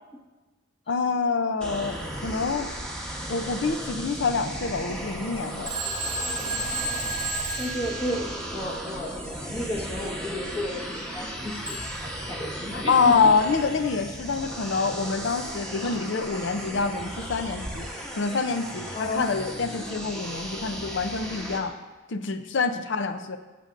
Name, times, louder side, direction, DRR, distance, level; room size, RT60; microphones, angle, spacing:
voice 1, 0.9-2.7 3.3-5.7 12.7-21.8 22.1-23.4, left 4 dB, 65° left, 10 dB, 0.5 m, -26 dB
sound 1, 1.6-21.6, right 1 dB, 5° left, 1.1 m, -36 dB
Telephone, 5.7-8.7 11.7-12.1, right 3 dB, 25° right, 0.7 m, -32 dB
voice 2, 7.6-13.2 15.8-16.0 18.9-19.3, left 1 dB, 30° left, -1 dB, 1.3 m, -33 dB
14.5 x 6.8 x 2.6 m, 1.2 s
head